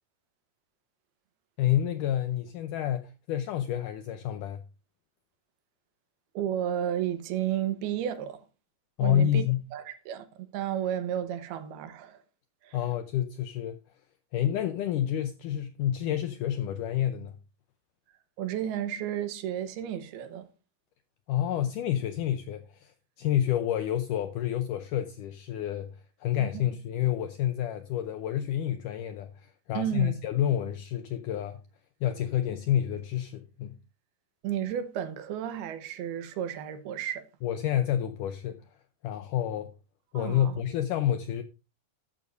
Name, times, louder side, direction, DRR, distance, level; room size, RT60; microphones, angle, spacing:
voice 1, 1.6-4.6 9.0-9.7 12.7-13.8 14.3-17.3 21.3-31.6 32.0-33.8 37.4-38.6 39.0-39.7 40.1-41.4, left 11 dB, 85° left, 1.8 m, -29 dB
voice 2, 6.3-8.4 9.0-9.4 9.7-10.3 10.5-12.2 12.6-12.8 18.4-20.5 26.4-26.6 29.7-30.1 34.4-37.3 40.1-40.6, right 10 dB, 85° right, 3.0 m, -32 dB
14.0 x 11.0 x 2.6 m
omnidirectional pair, 4.5 m